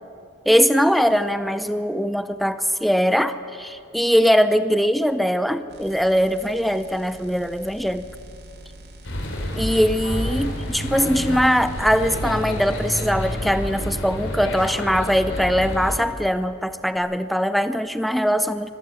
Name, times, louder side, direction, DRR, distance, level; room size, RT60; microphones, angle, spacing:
voice 1, 0.5-8.1 9.6-18.7, equal, ahead, 12 dB, 0.6 m, -21 dB
sound 1, 5.7-13.2 16.9-17.0, right 1 dB, 55° right, 3.2 m, -45 dB
sound 2, 9.0-16.0, left 1 dB, 75° left, 3.8 m, -29 dB
24.5 x 14.0 x 8.9 m, 2.5 s
head